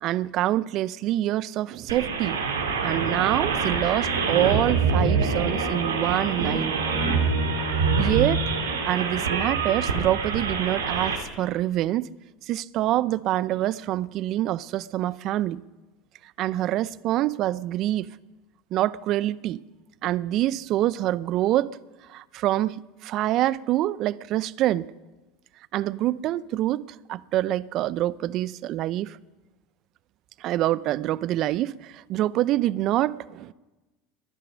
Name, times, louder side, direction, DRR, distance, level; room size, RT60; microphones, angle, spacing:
voice 1, 0.0-2.4 2.8-6.8 8.0-8.4 8.8-12.1 12.4-15.6 16.4-18.1 18.7-19.6 20.0-21.8 22.1-24.9 25.7-29.2 30.4-33.5, right 14 dB, 55° right, 0.5 m, -26 dB
sound 1, 1.9-11.2, right 4 dB, 90° right, 2.5 m, -25 dB
21.5 x 9.8 x 6.3 m
hypercardioid pair, 80°, 0 cm